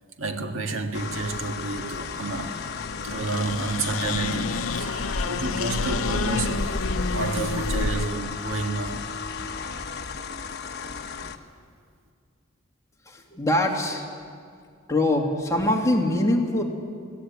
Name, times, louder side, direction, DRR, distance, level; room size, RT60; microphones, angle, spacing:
voice 1, 0.2-2.6 3.0-6.8 7.1-9.2, right 3 dB, 75° right, 1.8 m, -30 dB
sound 1, 0.9-11.4, left 5 dB, 55° left, 1.1 m, -35 dB
sound 2, 2.1-8.1, left 3 dB, 85° left, 0.8 m, -29 dB
voice 2, 13.1-14.1 14.9-16.6, left 1 dB, 15° left, 2.4 m, -23 dB
22.0 x 17.5 x 8.7 m
head